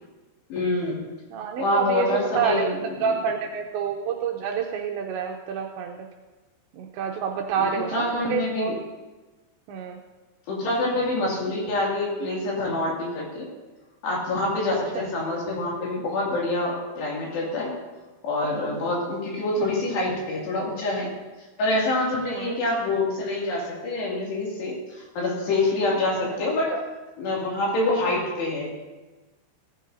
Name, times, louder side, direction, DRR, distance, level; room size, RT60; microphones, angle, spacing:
voice 1, 0.5-1.0 1.6-3.3 7.6-8.8 10.5-13.5 14.0-17.7 18.2-21.1 21.6-26.7 27.2-28.8, left 2 dB, 60° left, -3 dB, 4.4 m, -26 dB
voice 2, 1.3-2.7 3.0-6.1 6.7-8.7 9.7-10.0 15.0-15.1 22.3-22.6 26.7-26.8, right 7 dB, 80° right, 1 dB, 2.7 m, -28 dB
18.5 x 14.5 x 2.7 m, 1.2 s
omnidirectional pair, 5.8 m